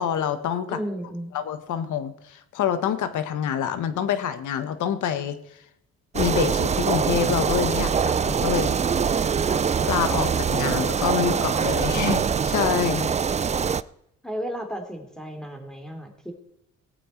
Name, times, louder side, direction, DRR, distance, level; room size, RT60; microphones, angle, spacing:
voice 1, 0.0-0.8 1.3-5.4 6.1-8.8 9.8-13.1, left 8 dB, 80° left, 10 dB, 1.5 m, -26 dB
voice 2, 0.7-1.3 14.2-16.3, equal, ahead, 4 dB, 3.2 m, -33 dB
sound 1, 6.1-13.8, right 6 dB, 25° right, 0.4 m, -23 dB
18.0 x 8.5 x 4.5 m, 0.79 s
cardioid pair, 90°, 30 cm